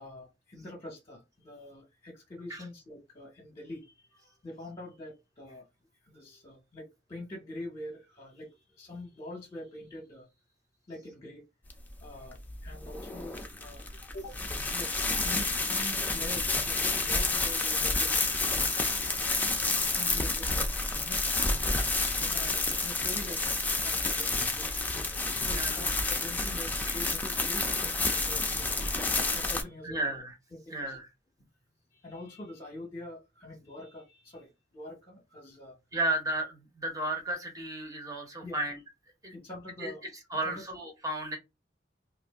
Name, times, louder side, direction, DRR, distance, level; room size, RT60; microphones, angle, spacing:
voice 1, 0.0-5.7 6.0-10.3 10.9-11.4 12.0-13.9 14.1-14.4 14.7-18.5 19.1-21.3 21.6-23.4 23.7-24.7 25.4-30.1 30.5-31.0 31.9-35.8 38.4-38.6 39.3-40.0 40.4-40.6, left 1 dB, 30° left, 0.8 m, -45 dB
sound 1, 11.7-29.6, left 3 dB, 10° left, 0.5 m, -30 dB
voice 2, 25.5-25.8 26.9-27.0 29.8-30.3 30.7-31.1 35.9-38.8 39.2-39.3 39.8-39.9 40.3-41.4, right 1 dB, 20° right, 0.9 m, -33 dB
2.6 x 2.5 x 3.5 m
head